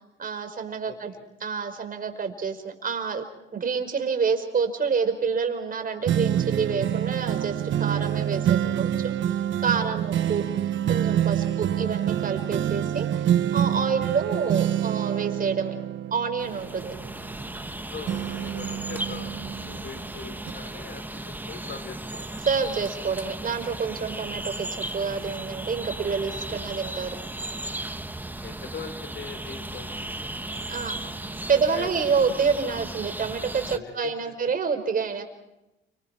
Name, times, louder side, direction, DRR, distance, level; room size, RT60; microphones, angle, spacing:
voice 1, 0.2-1.1 1.4-3.2 3.5-9.1 9.6-10.4 10.9-13.1 13.5-15.7 16.1-16.9 22.5-24.7 24.9-27.2 30.7-31.0 31.5-35.2, right 5 dB, 45° right, 6 dB, 5.2 m, -27 dB
voice 2, 0.9-1.3 8.6-10.0 11.4-11.6 14.0-14.4 17.9-19.3 19.7-22.3 26.5-26.7 28.4-30.2 31.5-31.9 33.7-34.1, left 5 dB, 60° left, 8 dB, 5.1 m, -42 dB
sound 1, 6.1-17.7 18.1-20.0 20.5-20.6, right 10 dB, 70° right, 1.4 m, -27 dB
sound 2, 16.4-33.8, right 1 dB, 10° right, 1.5 m, -36 dB
29.5 x 27.0 x 4.6 m, 0.95 s
cardioid pair, 90°, 20 cm